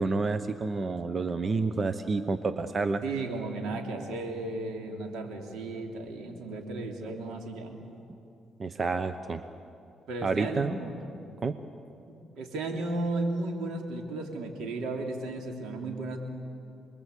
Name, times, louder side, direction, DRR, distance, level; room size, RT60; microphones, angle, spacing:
voice 1, 0.0-3.0 8.6-9.4 10.2-10.8 11.4-11.6, right 3 dB, 40° right, 10 dB, 0.9 m, -29 dB
voice 2, 3.0-7.8 10.1-11.2 12.1-16.2, right 2 dB, 85° right, 3 dB, 3.3 m, -34 dB
28.0 x 21.5 x 8.4 m, 2.7 s
cardioid pair, 90°, 0 cm